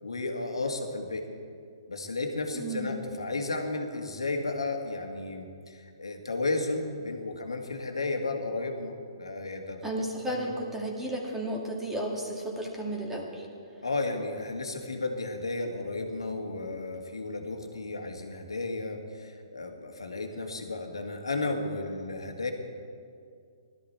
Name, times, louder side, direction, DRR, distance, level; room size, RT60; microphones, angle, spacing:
voice 1, 0.0-1.3 1.9-9.9 10.3-10.5 13.8-22.5, left 2 dB, 85° left, 4 dB, 1.9 m, -33 dB
voice 2, 2.5-2.9 9.8-13.5, right 1 dB, 10° right, -1 dB, 2.0 m, -33 dB
17.5 x 13.0 x 4.4 m, 2.3 s
hypercardioid pair, 135°, 3 cm